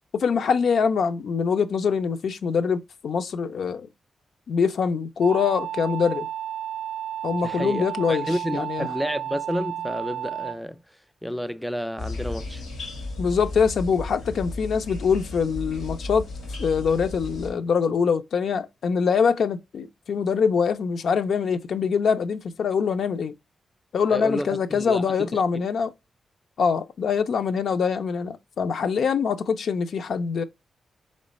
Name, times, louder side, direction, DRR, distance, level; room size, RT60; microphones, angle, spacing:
voice 1, 0.1-3.9 4.5-6.3 7.2-8.9 13.2-16.2 16.6-23.3 23.9-25.9 26.6-30.4, left 6 dB, 70° left, 0.4 m, -24 dB
sound 1, 5.2-10.6, right 11 dB, 90° right, 0.4 m, -32 dB
voice 2, 7.4-10.8 11.2-12.6 24.1-25.7, equal, ahead, 0.3 m, -30 dB
sound 2, 12.0-17.5, left 2 dB, 85° left, 1.3 m, -34 dB
3.8 x 3.1 x 4.0 m
wide cardioid pair, 125°, 0 cm